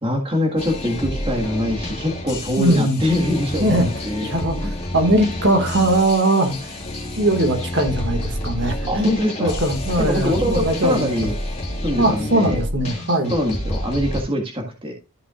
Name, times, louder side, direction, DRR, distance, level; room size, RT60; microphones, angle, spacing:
voice 1, 0.0-4.3 8.9-9.5 10.0-11.3 11.8-12.6 13.3-14.9, left 1 dB, 25° right, 1.7 m, -23 dB
sound 1, 0.6-14.2, left 1 dB, 30° left, 2.7 m, -29 dB
voice 2, 2.6-3.0 3.6-3.9 4.2-6.7 7.2-11.1 12.0-13.3, right 1 dB, 55° right, 2.0 m, -20 dB
14.0 x 6.0 x 2.5 m
head